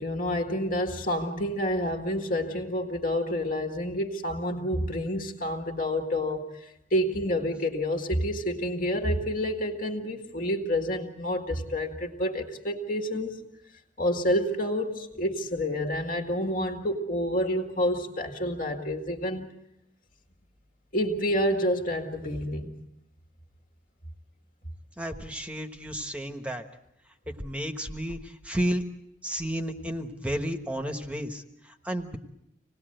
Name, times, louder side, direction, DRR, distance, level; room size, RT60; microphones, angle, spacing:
voice 1, 0.0-13.3 14.0-19.5 20.9-22.8, equal, 45° left, 2.1 m, -28 dB
voice 2, 25.0-26.6 27.3-28.8 29.2-32.2, equal, 5° right, 1.3 m, -32 dB
26.5 x 19.0 x 7.8 m
head